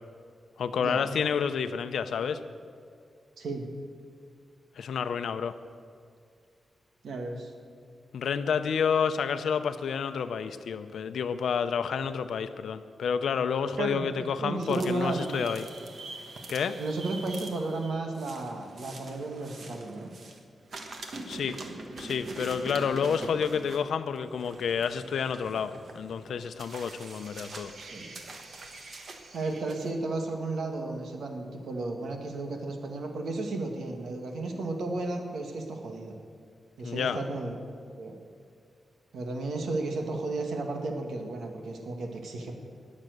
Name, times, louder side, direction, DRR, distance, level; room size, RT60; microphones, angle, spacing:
voice 1, 0.6-2.4 4.8-5.6 8.1-15.7 16.5-16.8 21.3-21.6 22.0-27.7 36.8-37.2, left 6 dB, 85° left, 10 dB, 0.7 m, -29 dB
voice 2, 3.4-3.7 7.0-7.5 13.8-14.1 14.4-15.5 16.8-20.1 27.8-28.1 29.3-36.2 36.8-37.5 38.0-38.1 39.1-42.5, right 2 dB, 80° right, 3 dB, 1.9 m, -33 dB
sound 1, 14.6-20.4 20.7-29.9, right 2 dB, 55° right, 1.5 m, -44 dB
20.0 x 7.4 x 6.6 m, 2.3 s
wide cardioid pair, 135°, 0 cm